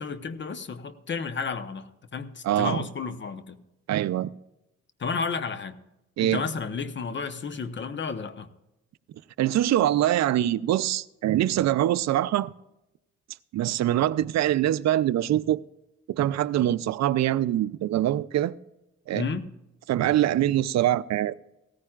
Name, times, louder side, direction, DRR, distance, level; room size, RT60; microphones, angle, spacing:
voice 1, 0.0-3.6 5.0-5.8 6.2-8.5 19.1-19.5, left 5 dB, 40° left, 1.0 m, -32 dB
voice 2, 2.4-2.8 3.9-4.3 6.2-6.4 9.4-12.5 13.5-15.6 16.1-18.5 19.1-19.3 19.9-21.3, right 12 dB, 60° right, 0.5 m, -24 dB
17.0 x 14.5 x 2.4 m
cardioid pair, 90°, 30 cm